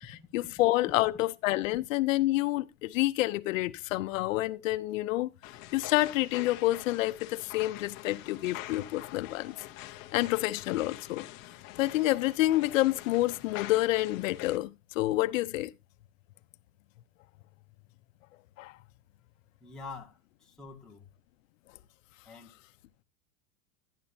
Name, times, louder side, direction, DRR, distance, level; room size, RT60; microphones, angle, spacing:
voice 1, 0.0-5.3 5.7-9.5 10.1-11.2 11.8-15.7 18.6-18.7, left 17 dB, 75° left, 0.7 m, -28 dB
sound 1, 5.4-14.6, left 15 dB, 30° left, 0.7 m, -45 dB
voice 2, 19.6-21.0 22.3-22.5, left 4 dB, ahead, 0.9 m, -46 dB
11.0 x 10.5 x 2.7 m
supercardioid pair, 180°, 40 cm